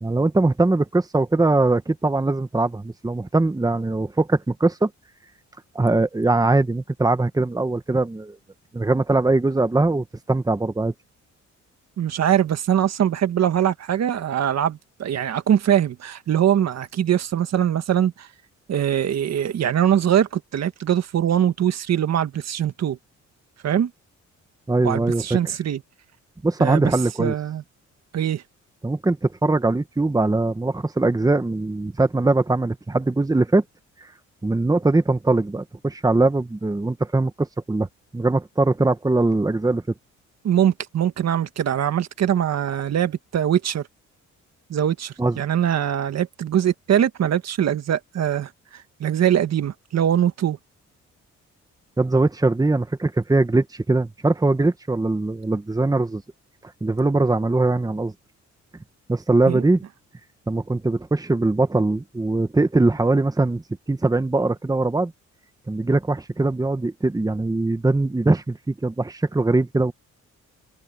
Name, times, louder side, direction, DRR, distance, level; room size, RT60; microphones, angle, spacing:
voice 1, 0.0-4.9 5.7-8.4 8.7-10.9 24.7-25.4 26.4-27.3 28.8-33.6 34.4-37.9 38.1-39.8 45.2-45.4 52.0-56.2 56.8-58.1 59.1-59.8 60.5-63.6 63.9-65.1 65.7-69.9, right 2 dB, 10° right, 1.4 m, -21 dB
voice 2, 12.0-18.3 18.7-23.0 23.6-23.9 24.8-25.8 26.6-27.6 28.1-28.4 40.4-43.9 44.7-50.6 59.5-59.6, right 10 dB, 60° right, 1.7 m, -22 dB
cardioid pair, 90°, 30 cm